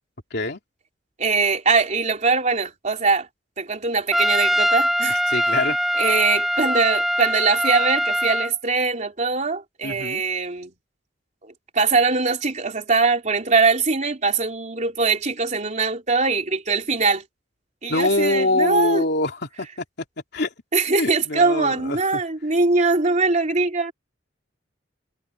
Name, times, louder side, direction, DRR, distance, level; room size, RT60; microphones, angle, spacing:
voice 1, 1.2-3.3 3.6-5.2 5.5-5.6 5.9-10.7 11.4-17.2 17.8-19.0 20.7-23.9, right 4 dB, 40° right, 3.4 m, -22 dB
Trumpet, 4.1-8.5, equal, ahead, 0.7 m, -22 dB
voice 2, 5.1-5.8 9.8-10.2 17.9-19.7 20.3-20.5 21.0-22.2, left 2 dB, 65° left, 3.0 m, -24 dB
head